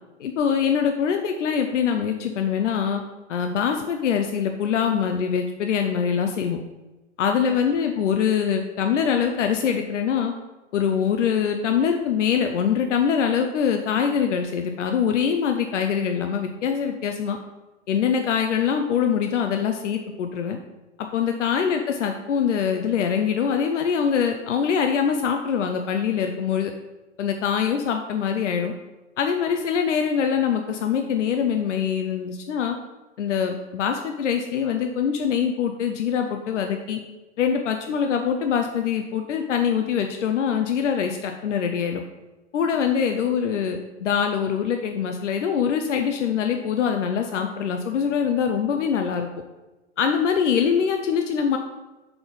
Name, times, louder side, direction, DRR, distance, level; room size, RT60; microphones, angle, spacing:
voice 1, 0.2-3.0 3.3-6.6 7.2-10.3 10.7-17.4 17.9-20.6 21.1-26.7 27.2-28.7 29.2-32.8 33.2-37.0 37.4-42.0 42.5-49.3 50.0-51.6, left 7 dB, 80° left, 5 dB, 0.6 m, -23 dB
4.3 x 4.2 x 5.1 m, 1.1 s
hypercardioid pair, 115°, 36 cm